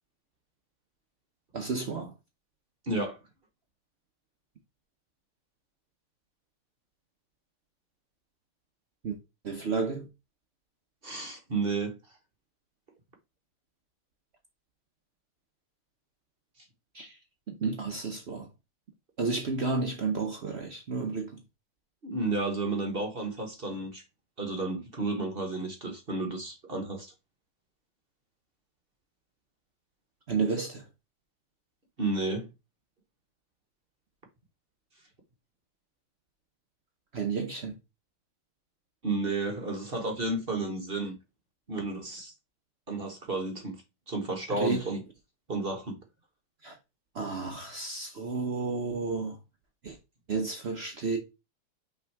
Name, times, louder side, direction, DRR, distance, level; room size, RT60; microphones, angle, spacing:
voice 1, 1.5-2.1 9.0-9.2 9.4-10.1 16.9-17.2 17.6-18.5 19.2-21.3 30.3-30.8 37.1-37.7 44.5-44.8 46.6-46.8 47.1-49.4 49.8-50.0 50.3-51.2, right 4 dB, 70° right, 0.6 m, -31 dB
voice 2, 2.9-3.2 11.0-11.9 22.0-24.0 24.4-27.1 32.0-32.5 39.0-41.1 41.7-42.3 42.9-43.8 44.1-45.0 45.5-46.0, right 2 dB, 35° right, 1.0 m, -32 dB
5.9 x 3.6 x 4.5 m
omnidirectional pair, 2.4 m